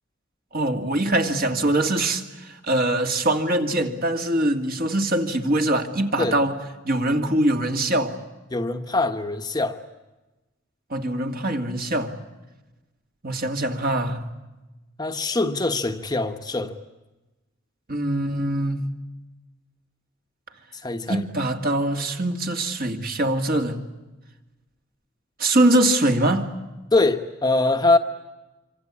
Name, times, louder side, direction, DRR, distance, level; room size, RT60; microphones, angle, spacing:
voice 1, 0.5-8.2 10.9-12.1 13.2-14.3 17.9-18.9 21.1-23.8 25.4-26.5, right 1 dB, 45° right, 2.4 m, -23 dB
voice 2, 8.5-9.8 15.0-16.7 20.8-21.2 26.9-28.0, left 2 dB, 20° left, 1.1 m, -23 dB
26.5 x 25.5 x 8.5 m
head